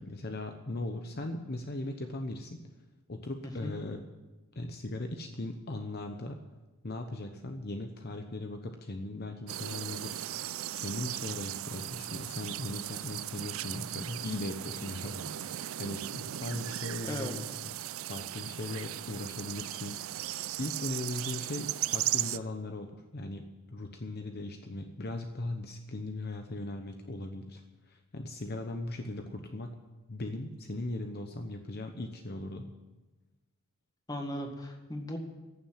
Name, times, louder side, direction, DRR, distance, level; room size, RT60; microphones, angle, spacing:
voice 1, 0.0-2.6 3.1-4.0 4.5-6.4 6.8-10.4 10.8-17.7 18.1-20.3 20.6-27.6 27.9-29.8 30.1-32.7, left 2 dB, 50° left, 5 dB, 0.9 m, -38 dB
sound 1, 9.5-22.4, right 13 dB, 75° right, 0.4 m, -37 dB
voice 2, 17.1-17.4 34.1-35.2, left 1 dB, 20° left, 3 dB, 1.8 m, -37 dB
15.0 x 7.4 x 9.1 m, 1.1 s
head